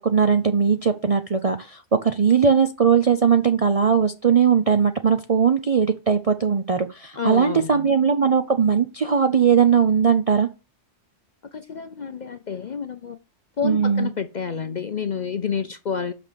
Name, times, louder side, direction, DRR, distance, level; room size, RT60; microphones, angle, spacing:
voice 1, 0.0-10.5 13.6-14.1, right 6 dB, 45° right, 0.4 m, -19 dB
voice 2, 7.2-7.9 11.5-13.2 13.6-16.1, left 6 dB, 50° left, 0.6 m, -29 dB
6.1 x 5.9 x 6.8 m
omnidirectional pair, 1.3 m